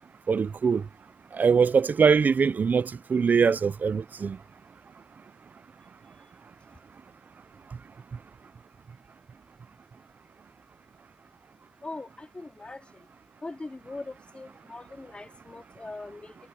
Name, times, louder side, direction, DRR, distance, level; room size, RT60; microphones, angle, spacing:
voice 1, 0.3-0.8 1.3-4.4, right 6 dB, 80° right, 0.4 m, -22 dB
voice 2, 11.8-12.9 13.4-16.4, left 2 dB, 40° left, 2.5 m, -41 dB
wide cardioid pair, 65°, 3 cm